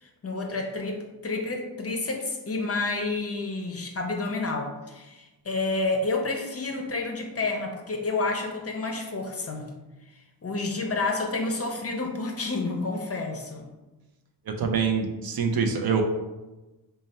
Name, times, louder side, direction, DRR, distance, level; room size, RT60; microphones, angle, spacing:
voice 1, 0.0-9.7 10.4-13.7, left 3 dB, 35° left, 3 dB, 0.5 m, -29 dB
voice 2, 14.5-16.0, right 6 dB, 60° right, 4 dB, 0.5 m, -25 dB
3.2 x 2.2 x 4.2 m, 1.1 s
wide cardioid pair, 90°, 41 cm